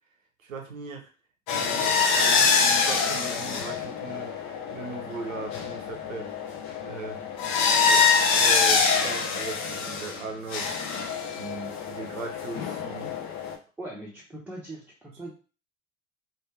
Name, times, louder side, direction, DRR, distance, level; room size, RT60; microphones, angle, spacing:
voice 1, 0.4-1.1 1.5-6.3 6.8-7.2 7.8-13.1, right 4 dB, 85° right, 3 dB, 0.7 m, -39 dB
sound 1, 1.5-10.2 10.5-13.5, left 5 dB, 45° left, 0.6 m, -25 dB
voice 2, 13.8-15.3, right 1 dB, 5° right, -5 dB, 0.8 m, -40 dB
3.1 x 2.3 x 3.2 m, 0.36 s
figure-of-eight pair, 65°, 39 cm